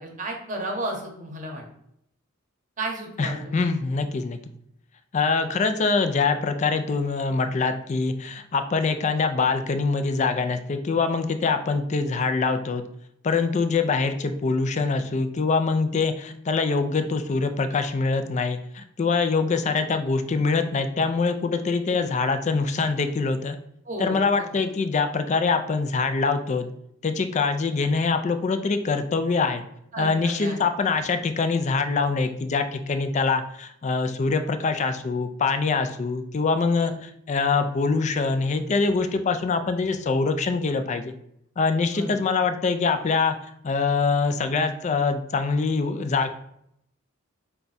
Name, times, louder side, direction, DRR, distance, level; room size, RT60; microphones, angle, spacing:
voice 1, 0.0-1.6 2.8-3.7 23.9-24.5 29.9-30.6 36.8-36.9 41.9-42.2, right 1 dB, 40° right, 2 dB, 0.9 m, -33 dB
voice 2, 3.2-4.4 5.1-12.8 13.2-23.6 24.0-26.7 27.0-29.6 30.0-41.1 41.6-43.3 43.6-46.3, left 4 dB, 35° left, 8 dB, 0.4 m, -24 dB
4.7 x 2.3 x 4.0 m, 0.74 s
head